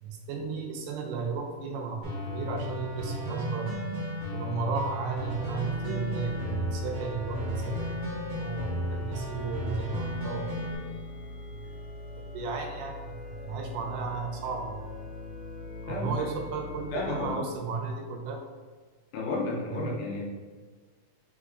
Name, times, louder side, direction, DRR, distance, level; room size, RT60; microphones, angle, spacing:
voice 1, 0.0-3.9 4.3-7.9 8.4-10.8 11.4-11.6 12.2-14.9 15.8-18.4 19.7-20.0, right 4 dB, 85° right, 3 dB, 2.2 m, -34 dB
sound 1, 2.0-10.7, equal, 55° right, 1.6 m, -34 dB
sound 2, 5.2-17.4, left 2 dB, 60° left, 2.0 m, -42 dB
voice 2, 16.9-17.5 19.1-20.2, left 2 dB, 75° left, -2 dB, 2.2 m, -32 dB
4.7 x 3.9 x 2.5 m, 1.5 s
omnidirectional pair, 3.7 m